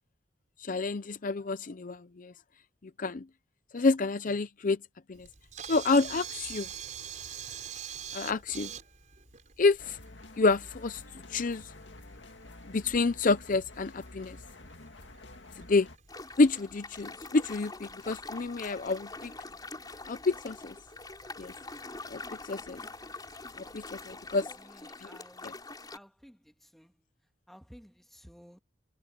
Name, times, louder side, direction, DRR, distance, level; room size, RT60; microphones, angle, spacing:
voice 1, 0.6-2.3 2.8-3.3 3.7-4.8 5.1-5.3 5.7-6.7 8.1-8.7 9.6-10.0 10.4-11.0 11.3-11.7 12.7-14.4 15.6-15.9 16.4-19.3 20.1-20.7 21.4-21.5 22.1-22.8 23.6-24.5 25.0-25.1 25.4-25.5, left 3 dB, 45° left, 0.6 m, -28 dB
Camera, 5.1-24.5, right 8 dB, 45° right, 5.5 m, -48 dB
sound 1, 9.8-16.0, left 2 dB, 80° left, 2.0 m, -49 dB
sound 2, 16.1-26.0, left 3 dB, 20° left, 4.6 m, -44 dB
voice 2, 24.9-25.5 25.9-26.4 26.7-26.9 27.5-28.6, equal, ahead, 1.8 m, -53 dB
head